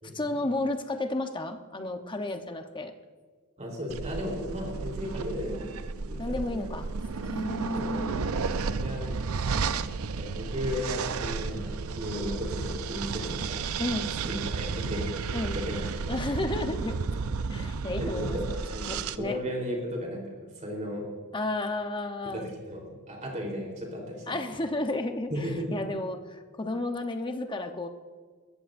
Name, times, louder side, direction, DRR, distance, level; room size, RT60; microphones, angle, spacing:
voice 1, 0.1-2.9 6.2-6.9 7.2-8.3 13.8-14.1 15.3-15.6 16.1-17.2 17.5-18.4 18.9-19.4 21.3-22.5 24.3-27.9, left 2 dB, 20° left, 6 dB, 0.9 m, -32 dB
voice 2, 3.6-5.7 6.1-6.7 7.7-8.1 8.4-9.2 9.5-9.8 10.2-13.7 14.2-15.9 18.0-21.1 22.2-24.4 25.3-25.8, equal, 35° right, 0 dB, 3.8 m, -35 dB
sound 1, 3.9-19.2, right 4 dB, 65° right, 0.5 m, -33 dB
21.0 x 14.5 x 2.6 m, 1.5 s
head